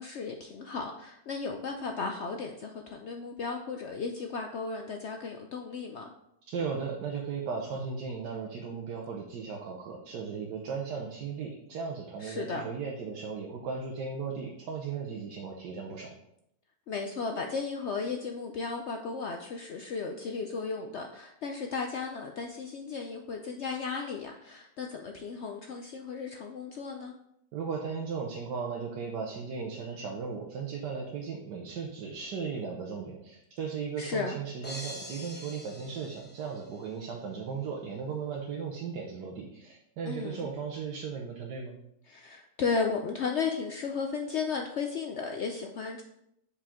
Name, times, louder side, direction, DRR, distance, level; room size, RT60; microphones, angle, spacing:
voice 1, 0.0-6.1 12.2-12.7 16.9-27.1 34.0-34.4 40.1-40.5 42.1-46.0, left 5 dB, 75° left, 3 dB, 0.6 m, -35 dB
voice 2, 6.4-16.1 27.5-41.8, right 5 dB, 85° right, -1 dB, 1.4 m, -36 dB
sound 1, 34.6-36.9, left 1 dB, 10° left, 0.6 m, -45 dB
7.4 x 5.1 x 3.6 m, 0.78 s
omnidirectional pair, 1.8 m